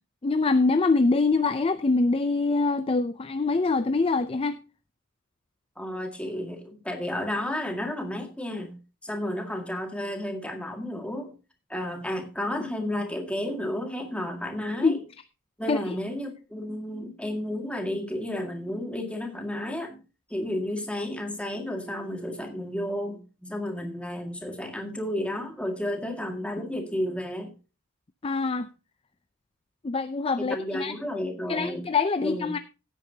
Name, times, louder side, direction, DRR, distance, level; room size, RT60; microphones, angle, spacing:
voice 1, 0.2-4.6 14.8-15.0 15.7-16.0 28.2-28.7 29.8-30.9 31.5-32.6, left 3 dB, 25° left, 0.4 m, -24 dB
voice 2, 5.8-8.8 9.0-11.3 11.7-15.0 15.6-20.0 20.3-27.5 30.4-31.8 32.2-32.6, left 1 dB, 5° left, 1.9 m, -32 dB
16.0 x 8.9 x 2.8 m
head